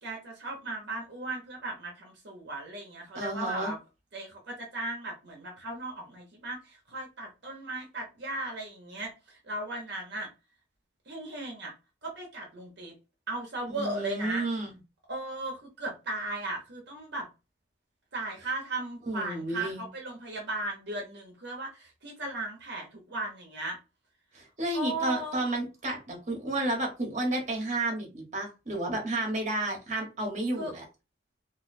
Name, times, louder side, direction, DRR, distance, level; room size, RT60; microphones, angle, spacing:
voice 1, 0.0-3.8 4.1-10.3 11.1-11.7 12.0-12.9 13.3-14.5 15.1-17.3 18.1-23.8 24.7-25.4 30.5-30.7, right 2 dB, 65° right, 0.9 m, -37 dB
voice 2, 3.1-3.7 13.7-14.7 19.1-19.9 24.3-30.8, right 1 dB, 40° right, 1.1 m, -31 dB
2.6 x 2.2 x 4.1 m
head